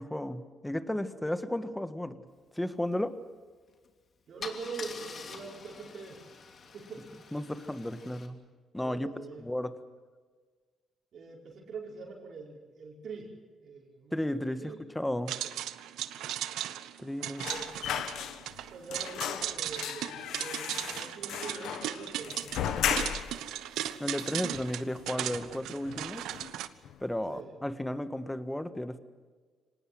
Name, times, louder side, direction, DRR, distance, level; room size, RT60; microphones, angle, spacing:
voice 1, 0.0-2.2 2.5-3.2 7.3-8.4 8.7-9.1 9.4-9.7 14.1-15.4 17.0-17.5 24.0-26.2 27.0-29.0, left 1 dB, 10° left, 10 dB, 1.6 m, -34 dB
Car / Engine starting / Idling, 3.7-3.9 4.4-8.3, left 5 dB, 50° left, 2.9 m, -46 dB
voice 2, 4.3-6.2 6.6-7.1 8.8-9.4 11.1-14.9 15.4-15.6 17.4-17.7 18.7-23.2 27.3-27.6, right 4 dB, 60° right, -2 dB, 5.4 m, -44 dB
sound 1, 15.3-26.7, right 12 dB, 85° right, 1.0 m, -37 dB
sound 2, 17.4-18.6 18.9-23.4 23.8-23.9 24.2-25.0 25.3-25.5 25.9-26.5 26.8-27.0, left 9 dB, 80° left, 1.4 m, -36 dB
25.0 x 19.0 x 8.0 m, 1.5 s
cardioid pair, 90°, 0 cm